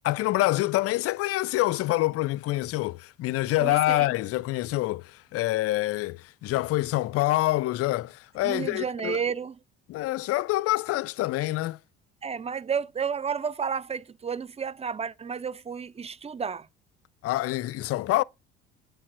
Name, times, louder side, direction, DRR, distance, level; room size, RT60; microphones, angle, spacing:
voice 1, 0.0-9.2 9.9-11.8 17.2-18.2, left 17 dB, 45° left, 0.5 m, -26 dB
voice 2, 3.6-4.1 8.4-9.6 12.2-16.7, right 6 dB, 20° right, 0.6 m, -31 dB
8.5 x 5.0 x 6.4 m
figure-of-eight pair, 55°, 33 cm